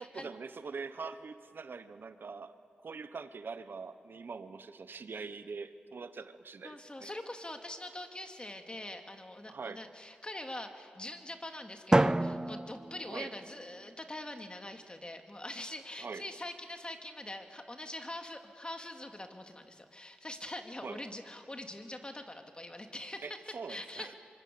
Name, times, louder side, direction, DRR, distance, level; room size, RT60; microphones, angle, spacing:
voice 1, 0.1-2.5 2.8-7.1 9.5-9.8 13.1-13.3 16.0-16.3 20.8-21.0 23.2-24.1, right 4 dB, 65° right, 11 dB, 1.2 m, -43 dB
voice 2, 6.6-24.1, left 1 dB, 25° left, 5 dB, 2.5 m, -44 dB
Drum, 11.9-13.9, right 1 dB, 20° right, 0.6 m, -29 dB
24.5 x 23.5 x 7.0 m, 2.2 s
cardioid pair, 45°, 4 cm